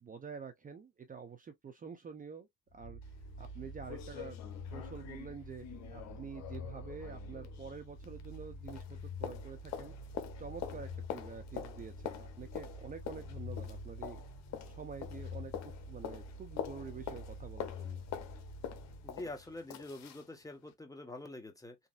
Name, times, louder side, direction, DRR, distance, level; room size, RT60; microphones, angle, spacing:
voice 1, 0.0-3.0 3.4-4.4 4.7-5.7 5.9-9.9 10.4-14.2 14.6-18.0, right 6 dB, 30° right, 0.6 m, -48 dB
sound 1, 2.7-19.6, left 2 dB, 45° left, 1.6 m, -47 dB
sound 2, 3.0-3.1 3.4-3.5 3.9-8.4 8.7-20.3 20.7-20.8, left 9 dB, 65° left, 0.8 m, -46 dB
voice 2, 19.0-21.8, left 2 dB, 10° left, 1.0 m, -45 dB
3.2 x 2.6 x 2.5 m
supercardioid pair, 90°, 30 cm